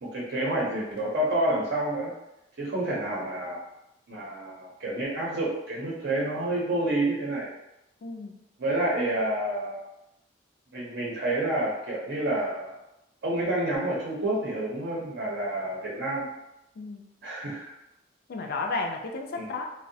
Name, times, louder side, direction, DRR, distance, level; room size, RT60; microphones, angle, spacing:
voice 1, 0.0-2.1 2.6-3.6 4.1-7.5 8.6-9.8 10.7-12.8 13.2-16.2 17.2-17.7 19.4-19.5, right 1 dB, 65° right, -5 dB, 0.6 m, -29 dB
voice 2, 8.0-8.3 16.8-17.0 18.3-19.7, left 3 dB, 55° left, 3 dB, 0.3 m, -32 dB
2.6 x 2.0 x 2.6 m, 0.88 s
head